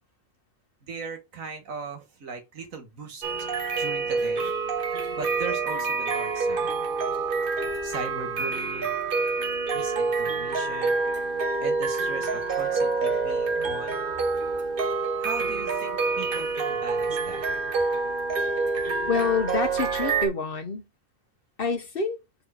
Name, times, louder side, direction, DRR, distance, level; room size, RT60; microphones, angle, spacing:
voice 1, 0.8-3.5 3.8-4.5 5.2-6.7 7.8-9.2 9.7-11.0 11.6-14.0 15.2-17.4, right 4 dB, 85° right, 1.9 m, -39 dB
sound 1, 3.2-20.3, right 4 dB, 45° right, 1.0 m, -27 dB
voice 2, 19.1-20.8 21.6-22.2, left 4 dB, 45° left, 1.2 m, -27 dB
4.6 x 3.9 x 5.7 m
omnidirectional pair, 1.4 m